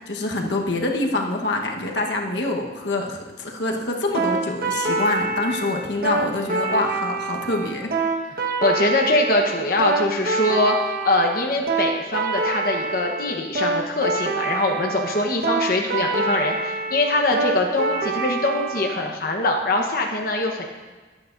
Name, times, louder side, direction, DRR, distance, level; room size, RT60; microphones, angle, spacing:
voice 1, 0.1-7.9, left 2 dB, 80° left, 1 dB, 1.2 m, -25 dB
sound 1, 4.1-19.0, right 3 dB, 55° right, 1.3 m, -26 dB
voice 2, 8.6-20.7, left 2 dB, 55° left, 1 dB, 1.1 m, -23 dB
22.0 x 8.6 x 2.6 m, 1.3 s
head